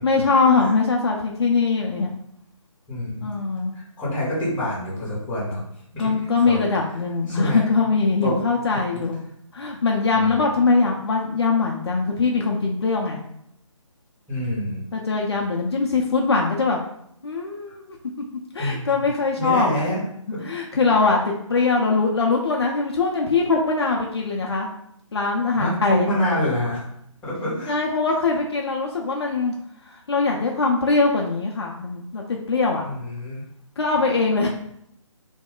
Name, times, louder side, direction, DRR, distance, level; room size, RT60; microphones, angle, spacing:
voice 1, 0.0-2.1 3.2-3.8 6.0-9.2 9.5-13.2 14.9-16.8 17.2-18.0 18.5-19.9 20.4-24.7 25.1-26.0 27.7-29.5 29.9-32.8 33.8-34.5, left 4 dB, 50° left, 0 dB, 0.5 m, -22 dB
voice 2, 2.9-3.3 3.7-5.6 5.9-6.1 6.4-6.6 7.3-7.6 8.2-8.4 10.1-10.4 14.3-14.8 18.6-18.9 19.4-20.0 20.3-20.4 20.7-20.8 25.5-26.9 27.2-27.8 32.8-33.4, left 1 dB, 5° left, -9 dB, 0.8 m, -26 dB
2.3 x 2.1 x 3.6 m, 0.73 s
figure-of-eight pair, 150°, 17 cm